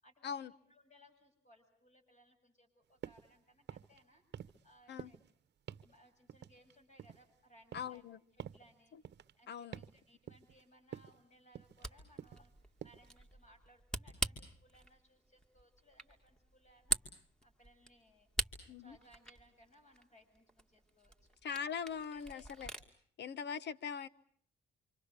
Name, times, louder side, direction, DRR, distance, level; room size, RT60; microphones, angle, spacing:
voice 1, 0.0-4.2 4.6-5.2 5.8-8.0 8.3-9.0 9.4-17.0 17.4-18.3 18.8-21.4 21.9-22.5, equal, 35° left, 7.5 m, -65 dB
sound 1, 3.0-3.3 3.6-4.0 4.3-4.7 5.0-5.3 5.7-5.9 6.3-7.3 7.7-8.0 8.4-8.7 9.1-9.3 9.7-10.0 10.3-10.6 10.9-11.2 11.6-11.9 12.2-12.5 12.8-13.1, right 9 dB, 60° right, 1.1 m, -49 dB
voice 2, 7.7-8.2 9.5-9.8 18.7-19.0 21.4-22.7 23.2-24.1, left 7 dB, 60° left, 1.0 m, -41 dB
Camera, 11.5-22.9, right 1 dB, 5° left, 2.5 m, -44 dB
28.0 x 26.0 x 6.7 m
cardioid pair, 90°, 20 cm